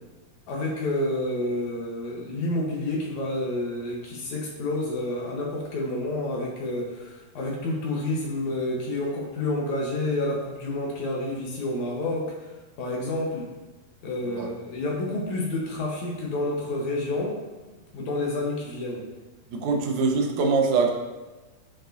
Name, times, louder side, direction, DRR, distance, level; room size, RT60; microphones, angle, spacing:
voice 1, 0.5-12.5 12.8-13.5 14.0-17.4 17.9-19.0 19.7-19.8, left 2 dB, 70° left, -2 dB, 1.9 m, -29 dB
voice 2, 19.5-20.9, right 4 dB, 70° right, 1 dB, 1.9 m, -23 dB
9.8 x 5.2 x 2.5 m, 1.2 s
omnidirectional pair, 4.3 m